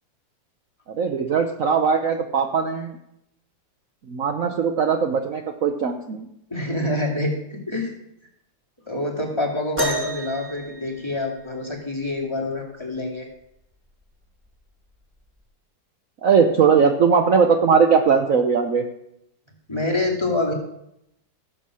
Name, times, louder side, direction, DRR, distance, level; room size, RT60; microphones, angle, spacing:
voice 1, 0.9-3.0 4.1-6.3 16.2-18.9, right 6 dB, 55° right, 6 dB, 1.1 m, -19 dB
voice 2, 6.5-7.9 8.9-13.3 19.7-20.5, left 2 dB, 15° left, -1 dB, 2.3 m, -26 dB
sound 1, 9.8-11.7 13.3-13.4 14.2-14.4 15.4-15.5, right 1 dB, 5° right, 2.6 m, -29 dB
17.0 x 7.5 x 6.3 m, 0.82 s
omnidirectional pair, 2.1 m